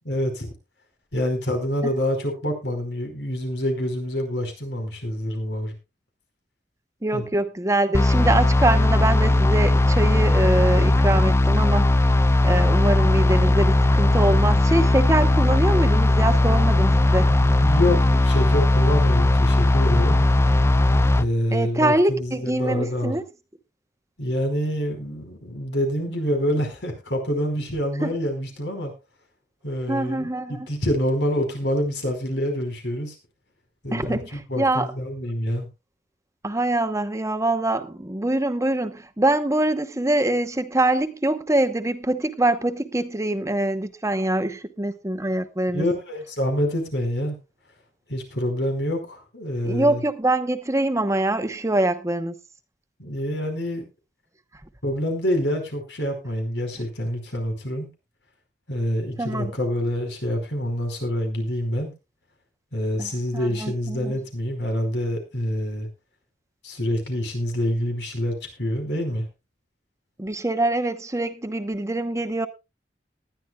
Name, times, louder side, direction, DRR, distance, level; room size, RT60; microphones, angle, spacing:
voice 1, 0.0-0.5 1.1-5.7 7.1-7.2 17.3-20.2 21.1-23.2 24.2-28.9 29.6-33.2 33.8-35.7 45.7-47.4 48.1-50.0 53.0-53.8 54.8-57.9 58.7-61.9 62.7-65.9 66.6-69.3, equal, 85° left, 4.9 m, -26 dB
voice 2, 7.0-11.9 12.4-17.3 21.5-23.2 28.0-28.1 29.9-30.7 33.9-34.9 36.4-45.8 49.6-52.4 59.2-59.5 63.0-64.1 70.2-72.5, right 1 dB, 20° right, 0.9 m, -24 dB
sound 1, 7.9-21.2, left 2 dB, 15° left, 0.5 m, -18 dB
19.5 x 11.0 x 2.3 m
head